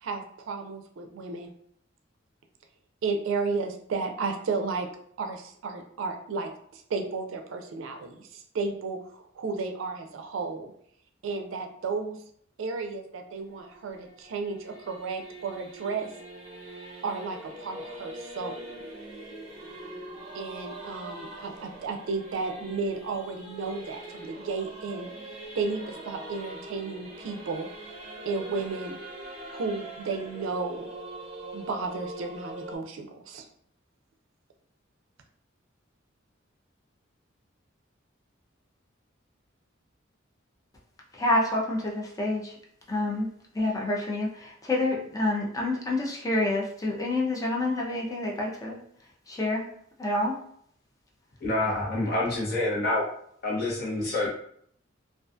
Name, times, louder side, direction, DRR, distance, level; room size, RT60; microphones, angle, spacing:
voice 1, 0.0-1.5 3.0-4.9 5.2-10.7 11.2-12.2 12.6-16.1 17.0-18.7 20.3-25.1 25.6-27.7 28.2-29.0 29.5-30.9 31.5-33.5, right 4 dB, 80° right, 4 dB, 0.4 m, -33 dB
Singing / Musical instrument, 13.4-32.8, right 1 dB, 35° right, 0.6 m, -43 dB
voice 2, 41.1-42.5 42.9-43.3 43.5-48.8 49.3-49.7 50.0-50.4, left 2 dB, 20° left, -2 dB, 0.5 m, -28 dB
voice 3, 51.4-53.0 53.4-54.3, left 2 dB, 50° left, -4 dB, 0.9 m, -27 dB
2.4 x 2.3 x 2.5 m, 0.65 s
head